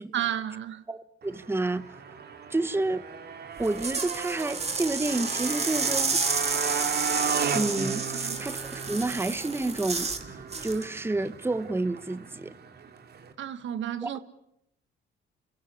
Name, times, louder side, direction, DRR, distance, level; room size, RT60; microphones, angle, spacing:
voice 1, 0.1-0.8 8.1-8.4 13.4-14.2, right 10 dB, 70° right, 1.8 m, -32 dB
voice 2, 0.9-1.8 2.5-3.0 3.6-6.2 7.5-12.6 14.0-14.1, right 2 dB, 10° right, 1.1 m, -30 dB
Motorcycle, 1.2-13.3, right 6 dB, 55° right, 2.6 m, -36 dB
sound 1, 3.6-10.2 10.5-10.8, right 4 dB, 30° right, 2.7 m, -30 dB
28.5 x 16.5 x 9.8 m
cardioid pair, 90°, 20 cm